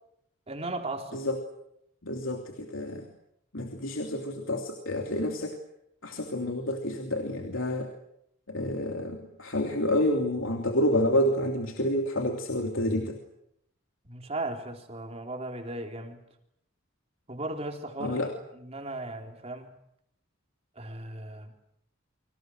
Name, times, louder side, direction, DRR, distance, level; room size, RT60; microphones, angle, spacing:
voice 1, 0.5-1.2 14.0-16.2 17.3-19.7 20.8-21.5, right 2 dB, 30° right, 3 dB, 3.9 m, -37 dB
voice 2, 2.0-3.1 3.5-5.6 6.0-7.9 8.5-13.2 18.0-18.3, left 1 dB, 90° left, 2 dB, 3.0 m, -29 dB
30.0 x 25.0 x 6.5 m, 0.75 s
head